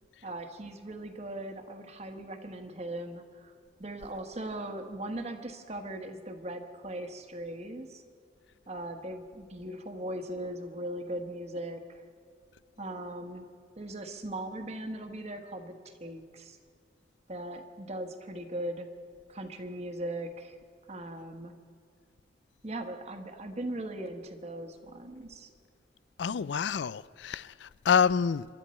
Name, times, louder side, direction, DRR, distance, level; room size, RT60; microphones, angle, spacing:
voice 1, 0.2-3.5 3.8-8.0 8.7-12.0 12.8-13.5 13.7-16.6 17.3-18.9 19.3-20.6 20.9-21.5 22.6-25.5 26.3-26.5, right 1 dB, 35° right, 1.4 m, -39 dB
voice 2, 26.2-28.5, left 6 dB, 75° left, 0.4 m, -27 dB
26.5 x 12.5 x 4.4 m
head